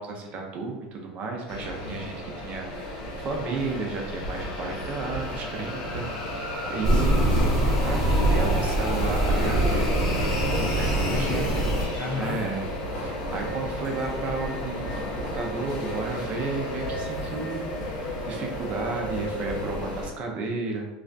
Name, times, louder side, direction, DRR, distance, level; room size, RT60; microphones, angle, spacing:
voice 1, 0.0-2.1 2.4-6.3 6.7-7.2 7.6-11.5 12.1-12.7 13.0-14.9 15.3-20.9, right 3 dB, 45° right, 1 dB, 0.5 m, -33 dB
sound 1, 1.5-20.1, left 1 dB, 75° left, 0.7 m, -32 dB
sound 2, 6.8-11.8, right 1 dB, 10° right, 1.0 m, -23 dB
voice 2, 6.9-7.7 11.1-12.4, left 3 dB, 30° left, -1 dB, 0.6 m, -34 dB
2.4 x 2.1 x 2.5 m, 1.0 s
supercardioid pair, 105°, 4 cm